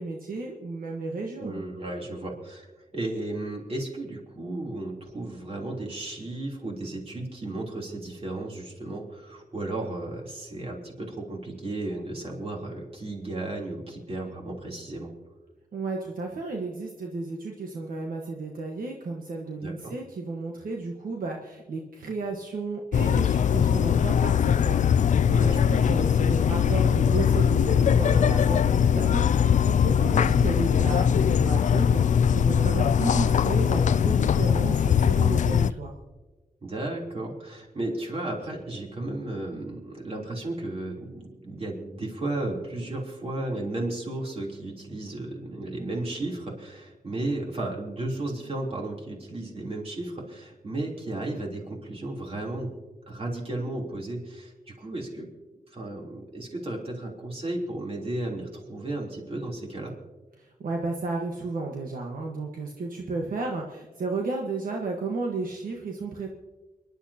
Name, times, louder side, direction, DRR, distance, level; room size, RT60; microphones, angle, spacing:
voice 1, 0.0-1.6 15.7-35.9 60.4-66.3, right 3 dB, 75° right, 0 dB, 1.4 m, -33 dB
voice 2, 1.4-2.7 2.9-15.1 19.6-19.9 25.3-25.9 30.1-30.3 36.6-52.7 53.1-55.3 55.7-59.9, right 2 dB, 40° right, -1 dB, 3.4 m, -34 dB
sound 1, 22.9-35.7, left 8 dB, 60° left, 0.4 m, -21 dB
29.5 x 11.0 x 2.9 m, 1.2 s
wide cardioid pair, 115°, 15 cm